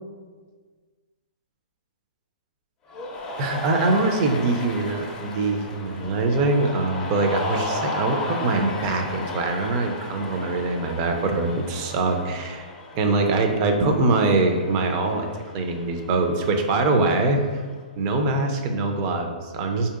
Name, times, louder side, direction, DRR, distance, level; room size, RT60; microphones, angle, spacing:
Cheering, 2.9-17.7, left 2 dB, 20° left, 0.5 m, -35 dB
voice 1, 3.4-12.7 12.9-15.3 15.5-17.4 18.0-19.9, right 3 dB, 35° right, 4 dB, 0.5 m, -23 dB
4.4 x 2.7 x 2.4 m, 1.5 s
hypercardioid pair, 130°, 5 cm